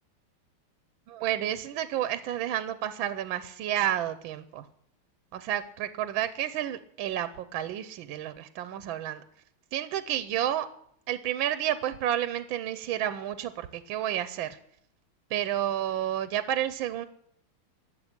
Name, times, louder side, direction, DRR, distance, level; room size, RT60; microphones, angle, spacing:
voice 1, 1.1-4.6 5.3-9.2 9.7-10.7 11.1-14.6 15.3-17.1, right 11 dB, 75° right, 12 dB, 1.4 m, -30 dB
12.5 x 7.2 x 9.7 m, 0.71 s
omnidirectional pair, 2.3 m